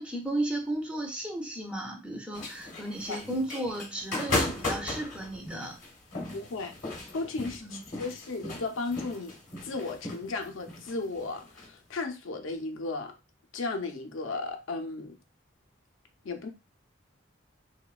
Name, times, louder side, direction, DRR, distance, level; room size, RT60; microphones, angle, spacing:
voice 1, 0.0-5.8 7.6-7.8, right 1 dB, 5° right, 0.3 m, -34 dB
sound 1, 2.3-11.7, left 2 dB, 40° left, 0.8 m, -36 dB
voice 2, 6.3-6.7 7.1-9.4 9.6-13.1 13.5-15.2 16.2-16.5, left 3 dB, 80° left, 0.5 m, -35 dB
2.9 x 2.1 x 2.3 m
head